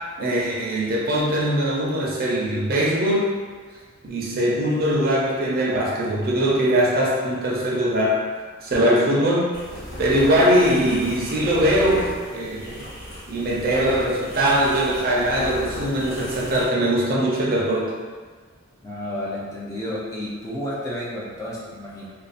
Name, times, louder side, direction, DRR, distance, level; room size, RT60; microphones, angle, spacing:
voice 1, 0.2-3.3 4.0-8.2 8.6-9.5 10.0-12.9 13.3-17.9, equal, 50° right, -4 dB, 0.5 m, -21 dB
sound 1, 9.5-16.7, equal, 85° left, 0.9 m, -35 dB
voice 2, 18.8-22.1, left 1 dB, 15° left, -6 dB, 0.4 m, -31 dB
2.5 x 2.2 x 2.4 m, 1.5 s
head